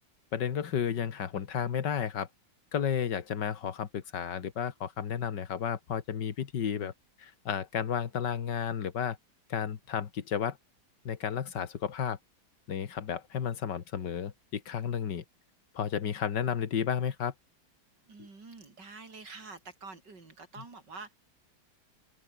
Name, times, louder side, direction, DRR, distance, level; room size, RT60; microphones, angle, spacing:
voice 1, 0.3-2.3 2.7-6.9 7.2-9.2 9.5-10.6 11.1-12.2 12.7-15.2 15.7-17.3, left 8 dB, 80° left, 2.2 m, -32 dB
voice 2, 18.1-21.1, right 4 dB, 85° right, 4.6 m, -47 dB
omnidirectional pair, 1.8 m